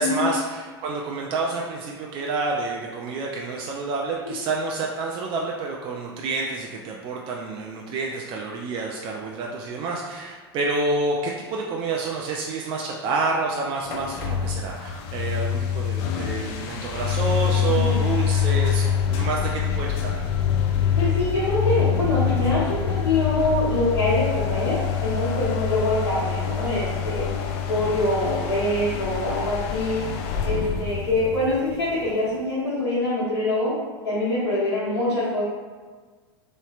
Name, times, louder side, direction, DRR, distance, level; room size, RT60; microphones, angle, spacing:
voice 1, 0.0-20.2, right 3 dB, 40° right, -2 dB, 0.5 m, -28 dB
sound 1, 13.9-32.4, left 8 dB, 55° left, 0.5 m, -25 dB
voice 2, 17.6-18.1 21.0-27.4 27.7-30.0 30.4-33.7 34.0-35.4, left 1 dB, 80° left, -11 dB, 1.2 m, -24 dB
4.0 x 3.1 x 2.4 m, 1.5 s
hypercardioid pair, 90°, 13 cm